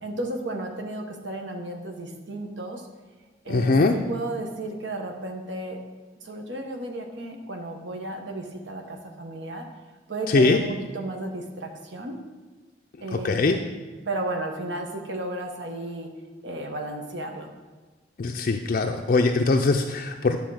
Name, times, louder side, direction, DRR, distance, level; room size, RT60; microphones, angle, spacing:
voice 1, 0.0-2.9 3.4-5.8 6.2-9.7 10.1-12.2 13.0-13.6 14.0-16.1 16.4-17.5, right 2 dB, 70° right, 3 dB, 1.1 m, -33 dB
voice 2, 3.5-3.9 10.3-10.6 13.1-13.6 18.2-20.4, left 3 dB, 45° left, 3 dB, 0.4 m, -21 dB
9.7 x 3.6 x 6.3 m, 1.3 s
head